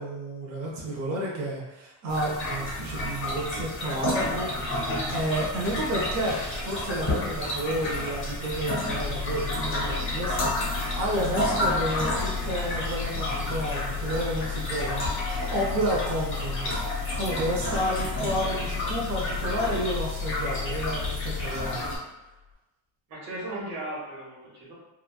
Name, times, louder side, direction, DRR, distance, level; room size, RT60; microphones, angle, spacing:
voice 1, 0.0-16.7 17.2-21.9, right 1 dB, 40° right, -5 dB, 0.6 m, -31 dB
sound 1, 2.1-22.0, left 1 dB, 25° left, 0.7 m, -31 dB
sound 2, 8.9-22.0 22.3-22.5, left 7 dB, 60° left, 0.7 m, -35 dB
voice 2, 23.1-24.7, right 1 dB, 80° right, -5 dB, 1.3 m, -36 dB
3.0 x 2.3 x 2.3 m, 1.0 s
cardioid pair, 155°, 49 cm